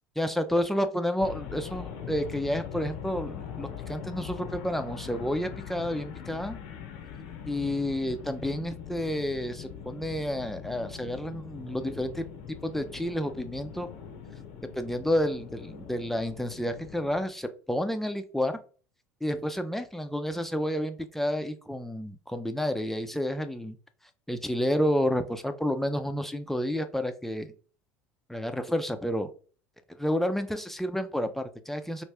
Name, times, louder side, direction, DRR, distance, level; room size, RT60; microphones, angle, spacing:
voice 1, 0.2-6.6 7.5-12.2 12.6-13.9 14.7-18.6 19.2-23.8 24.3-27.5 28.3-29.3 30.0-32.0, equal, 5° left, 8 dB, 0.5 m, -30 dB
sound 1, 1.2-17.2, left 8 dB, 65° left, 0.6 m, -42 dB
3.1 x 2.5 x 3.4 m, 0.38 s
figure-of-eight pair, 70°, 8 cm